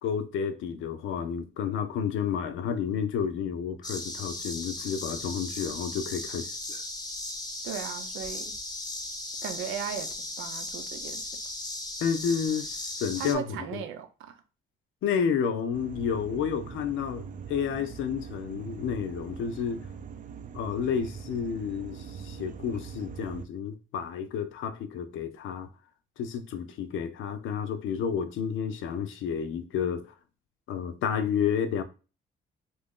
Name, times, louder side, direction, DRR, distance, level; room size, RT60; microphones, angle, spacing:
voice 1, 0.0-6.8 12.0-13.5 13.7-13.8 15.0-19.9 20.5-25.7 26.2-30.1 30.7-31.8, left 7 dB, 80° left, 0.6 m, -31 dB
sound 1, 3.8-13.4, left 2 dB, 20° left, 0.6 m, -37 dB
voice 2, 7.6-8.5 9.4-11.3 13.2-14.4, right 8 dB, 90° right, 0.6 m, -37 dB
sound 2, 15.7-23.5, right 7 dB, 40° right, 0.4 m, -42 dB
2.8 x 2.5 x 3.6 m
cardioid pair, 90°, 20 cm